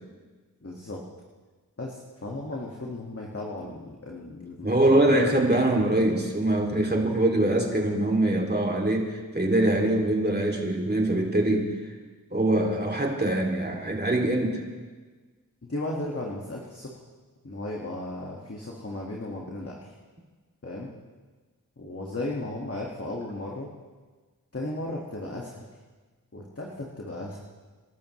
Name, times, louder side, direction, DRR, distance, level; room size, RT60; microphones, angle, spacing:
voice 1, 0.6-1.0 1.8-5.1 15.6-16.9 17.4-20.0 20.6-20.9 21.8-23.7 24.5-25.6 26.3-27.4, left 2 dB, 40° left, -2 dB, 1.9 m, -35 dB
voice 2, 4.6-11.9 12.3-14.6, right 1 dB, 25° right, 0 dB, 2.8 m, -23 dB
27.5 x 12.5 x 3.2 m, 1.4 s
wide cardioid pair, 40°, 36 cm